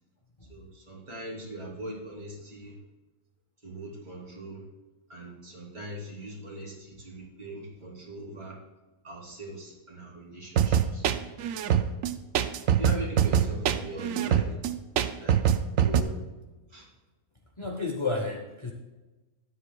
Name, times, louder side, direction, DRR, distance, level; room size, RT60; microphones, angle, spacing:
voice 1, 0.5-2.7 3.6-4.6 5.1-8.6 9.0-11.0 11.7-11.8 12.8-14.6 15.2-15.4 15.8-16.1 16.7-16.8, right 1 dB, 35° right, -5 dB, 3.3 m, -41 dB
sound 1, 10.6-16.0, right 9 dB, 90° right, 1.0 m, -24 dB
voice 2, 17.6-18.7, left 3 dB, 25° left, 2 dB, 0.7 m, -31 dB
13.0 x 10.5 x 2.3 m, 1.1 s
omnidirectional pair, 1.3 m